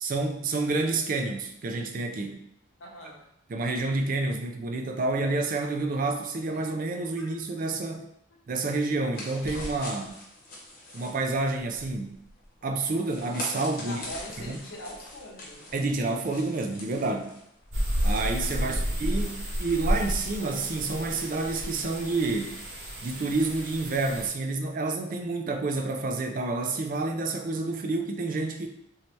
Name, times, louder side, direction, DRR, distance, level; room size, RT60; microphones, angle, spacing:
voice 1, 0.0-2.4 3.5-8.0 8.5-10.1 10.9-12.2 12.6-14.0 14.4-14.6 15.7-17.3 18.0-22.6 23.0-28.7, right 3 dB, 40° right, 4 dB, 0.3 m, -29 dB
voice 2, 2.8-3.3 6.5-6.6 7.2-7.3 13.8-15.7 18.5-19.0, left 1 dB, 75° left, -1 dB, 0.8 m, -43 dB
sound 1, 9.1-19.3, left 1 dB, 45° left, 0.9 m, -43 dB
sound 2, 17.7-24.3, equal, 75° right, 1.0 m, -31 dB
3.1 x 2.7 x 3.2 m, 0.76 s
head